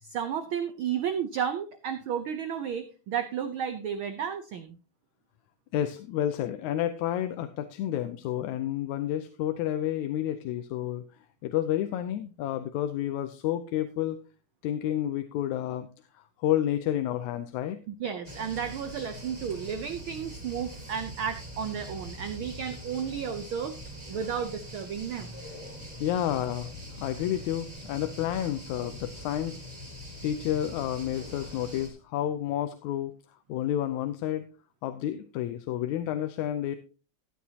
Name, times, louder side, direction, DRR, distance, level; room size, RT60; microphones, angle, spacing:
voice 1, 0.0-4.8 17.9-23.8 24.1-25.3, right 8 dB, 85° right, 9 dB, 1.1 m, -33 dB
voice 2, 5.7-11.0 11.4-14.2 14.6-15.9 16.1-17.8 26.0-26.7 27.0-29.6 30.2-33.1 33.5-34.5 34.8-36.8, left 11 dB, 85° left, 9 dB, 2.1 m, -30 dB
sound 1, 18.2-31.9, equal, 15° right, 2.5 m, -43 dB
14.5 x 9.3 x 2.8 m, 0.35 s
omnidirectional pair, 3.3 m